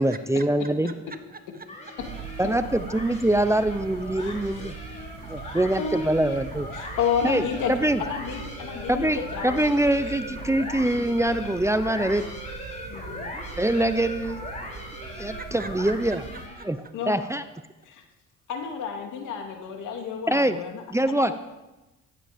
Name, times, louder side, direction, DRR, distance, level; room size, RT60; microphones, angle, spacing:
voice 1, 0.0-0.9 2.4-4.7 5.3-6.7 7.2-7.4 7.7-8.0 8.9-12.3 13.6-14.4 15.2-16.2 16.6-16.8 17.1-17.4 20.3-20.6 20.9-21.3, right 1 dB, 10° right, 11 dB, 0.7 m, -24 dB
voice 2, 0.9-1.6 15.1-16.7, right 4 dB, 30° right, 10 dB, 1.2 m, -43 dB
sound 1, 1.7-16.8, left 1 dB, 25° left, 4.1 m, -39 dB
sound 2, 2.0-16.5, right 6 dB, 75° right, 2.2 m, -41 dB
voice 3, 4.2-4.7 5.4-6.3 6.7-7.7 8.0-9.7 10.3-10.4 12.9-13.3 16.9-17.3 17.8-18.0 18.5-21.4, left 6 dB, 85° left, 3 dB, 2.7 m, -31 dB
15.0 x 11.5 x 5.2 m, 1.0 s
cardioid pair, 90°, 30 cm